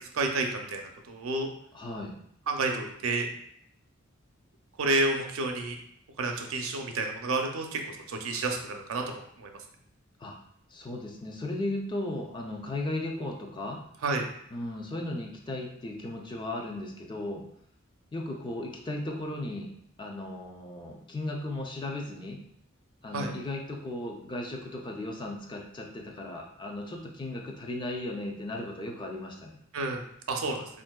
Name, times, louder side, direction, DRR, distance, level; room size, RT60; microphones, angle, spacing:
voice 1, 0.1-1.5 2.5-3.3 4.8-5.8 6.2-9.6 14.0-14.3 23.1-23.3 29.7-30.6, right 2 dB, 85° right, 3 dB, 0.5 m, -30 dB
voice 2, 1.7-2.2 10.2-10.4 10.7-13.8 14.5-17.4 18.1-19.7 20.0-22.4 23.0-29.6, left 1 dB, 25° left, 1 dB, 0.4 m, -36 dB
4.1 x 2.6 x 2.2 m, 0.69 s
head